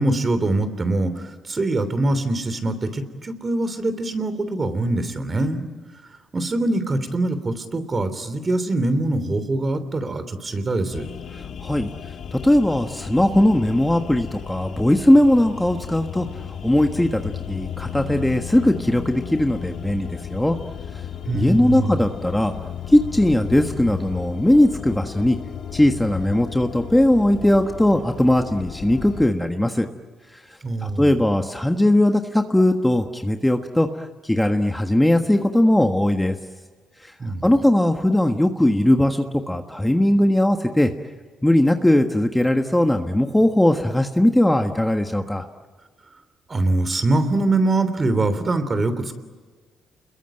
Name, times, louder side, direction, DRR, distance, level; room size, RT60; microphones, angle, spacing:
voice 1, 0.0-5.6 6.3-11.1 21.3-22.0 30.6-31.1 37.2-37.5 46.5-49.1, right 2 dB, 30° right, 11 dB, 3.2 m, -23 dB
sound 1, 10.9-29.3, left 8 dB, 65° left, 1.9 m, -35 dB
voice 2, 11.3-11.9 12.3-20.6 21.3-22.5 22.9-25.4 25.7-29.9 30.8-36.3 37.0-37.1 37.4-40.9 41.4-45.5, left 1 dB, 5° left, 5 dB, 1.5 m, -19 dB
29.0 x 22.0 x 9.1 m, 1.4 s
cardioid pair, 90°, 0 cm